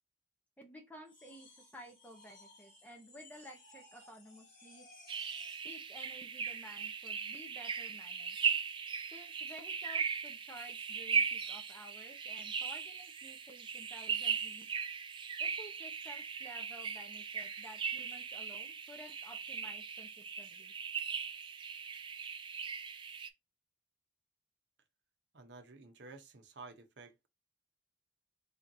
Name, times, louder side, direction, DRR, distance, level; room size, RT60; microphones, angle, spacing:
voice 1, 0.6-5.1 5.6-8.5 9.1-14.7 15.4-20.7, equal, 10° left, 0.7 m, -54 dB
sound 1, 1.0-5.8, left 2 dB, 40° left, 2.2 m, -59 dB
sound 2, 5.1-23.3, right 6 dB, 25° right, 0.3 m, -38 dB
voice 2, 25.3-27.3, right 3 dB, 55° right, 0.8 m, -52 dB
4.4 x 3.3 x 2.7 m
head